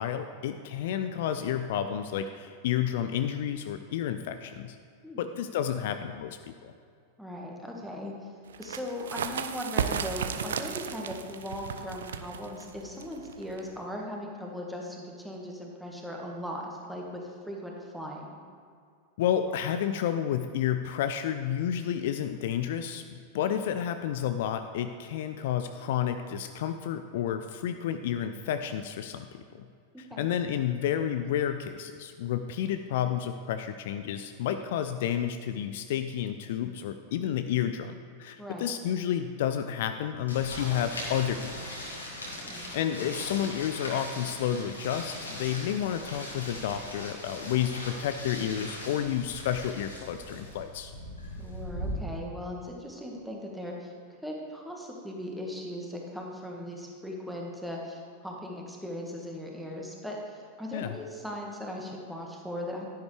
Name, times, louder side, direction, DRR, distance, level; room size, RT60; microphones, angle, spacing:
voice 1, 0.0-4.8 5.2-6.7 19.2-29.7 30.0-41.6 42.7-50.9 60.7-61.0, left 9 dB, 55° left, 9 dB, 0.4 m, -31 dB
voice 2, 5.0-5.4 7.2-8.3 8.6-18.4 30.1-30.3 38.4-38.7 42.4-42.7 51.4-53.9 54.2-62.9, left 1 dB, ahead, -1 dB, 1.7 m, -38 dB
sound 1, 8.5-13.9, right 7 dB, 65° right, 0.5 m, -35 dB
sound 2, 40.3-51.9, left 1 dB, 75° left, 2.1 m, -40 dB
10.5 x 10.5 x 3.3 m, 2.2 s
figure-of-eight pair, 90°, 0 cm